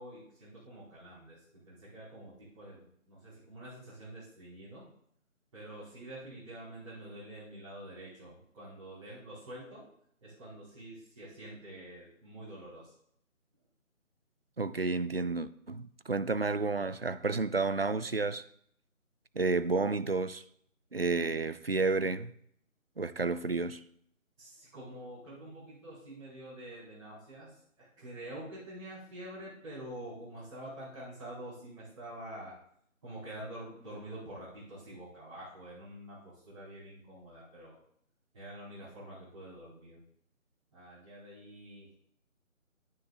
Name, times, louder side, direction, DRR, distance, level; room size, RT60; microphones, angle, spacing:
voice 1, 0.0-4.9 5.5-9.8 10.2-12.9 24.4-32.5 33.0-37.8 38.3-40.0 40.7-41.9, right 1 dB, 25° right, 5.4 m, -47 dB
voice 2, 14.6-18.4 19.4-20.4 20.9-22.3 23.0-23.8, right 3 dB, 45° right, 0.4 m, -31 dB
18.5 x 10.0 x 2.6 m
figure-of-eight pair, 160°, 41 cm